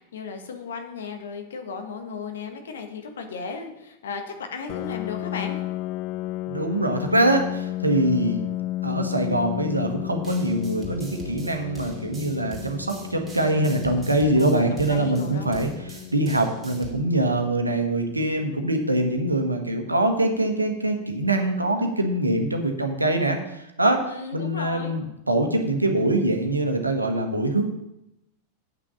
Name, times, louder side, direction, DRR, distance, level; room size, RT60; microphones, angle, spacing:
voice 1, 0.0-5.6 14.4-15.5 15.9-16.1 24.0-25.0, left 5 dB, 65° left, 5 dB, 1.5 m, -35 dB
Piano, 4.7-20.1, left 16 dB, 40° left, 0.3 m, -34 dB
voice 2, 6.5-8.4 8.8-24.0 24.3-27.6, right 1 dB, 85° right, 4 dB, 1.3 m, -23 dB
sound 1, 10.2-16.9, left 1 dB, 10° right, 2.7 m, -42 dB
8.4 x 6.2 x 7.1 m, 0.87 s
figure-of-eight pair, 90°, 0 cm